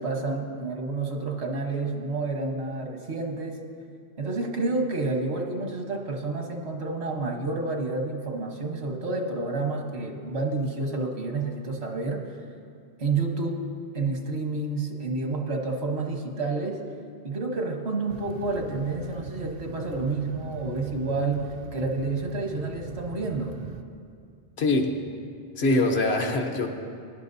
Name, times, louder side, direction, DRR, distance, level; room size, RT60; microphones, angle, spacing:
voice 1, 0.0-3.6 4.2-12.2 13.0-13.6 13.9-16.8 17.2-23.6, right 3 dB, 85° right, 2 dB, 1.5 m, -29 dB
sound 1, 18.1-23.8, right 5 dB, 65° right, 0.8 m, -40 dB
voice 2, 24.6-25.0 25.6-26.7, left 2 dB, 80° left, 3 dB, 1.2 m, -23 dB
18.5 x 11.0 x 2.7 m, 2.3 s
omnidirectional pair, 1.1 m